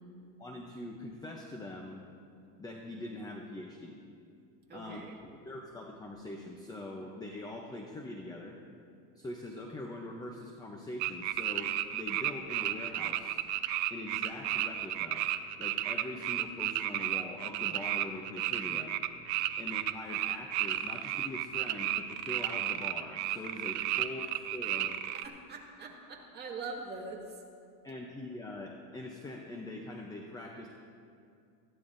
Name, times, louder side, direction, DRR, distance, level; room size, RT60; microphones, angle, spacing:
voice 1, 0.4-2.0 2.6-4.0 4.7-8.6 9.1-13.4 13.9-15.3 15.6-19.0 19.6-24.2 24.5-24.9 27.8-30.7, left 1 dB, 10° left, 1 dB, 0.7 m, -43 dB
voice 2, 4.7-5.2 24.1-24.2 25.1-27.4, right 3 dB, 20° right, -3 dB, 2.2 m, -43 dB
sound 1, 11.0-25.2, right 13 dB, 40° right, 0.5 m, -33 dB
20.0 x 14.5 x 2.7 m, 2.4 s
supercardioid pair, 140°, 48 cm